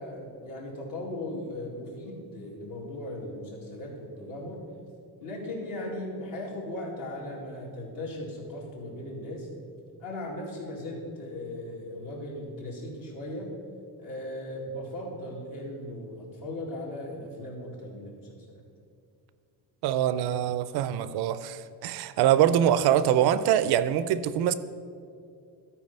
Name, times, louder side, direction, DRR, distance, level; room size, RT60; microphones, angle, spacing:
voice 1, 0.0-4.6 5.2-9.5 10.0-13.5 14.0-18.6, left 1 dB, 55° left, 2.3 m, -38 dB
voice 2, 19.8-24.5, right 10 dB, 70° right, 0.5 m, -24 dB
12.5 x 4.6 x 5.5 m
cardioid pair, 150°, 41 cm